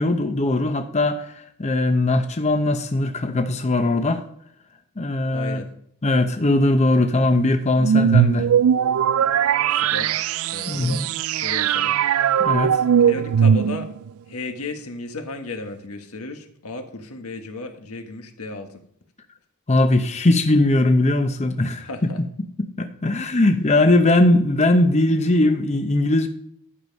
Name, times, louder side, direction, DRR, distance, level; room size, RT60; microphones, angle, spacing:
voice 1, 0.0-4.2 5.0-5.6 6.0-8.5 10.7-11.0 12.4-12.8 19.7-22.1 22.6-26.3, left 2 dB, 30° left, 7 dB, 0.7 m, -20 dB
voice 2, 5.3-5.7 9.7-11.9 13.0-13.9 14.3-18.8 21.7-22.2, left 2 dB, 85° left, 5 dB, 1.5 m, -34 dB
sound 1, 7.8-14.1, right 8 dB, 70° right, 0.3 m, -19 dB
11.5 x 7.3 x 5.3 m, 0.69 s
head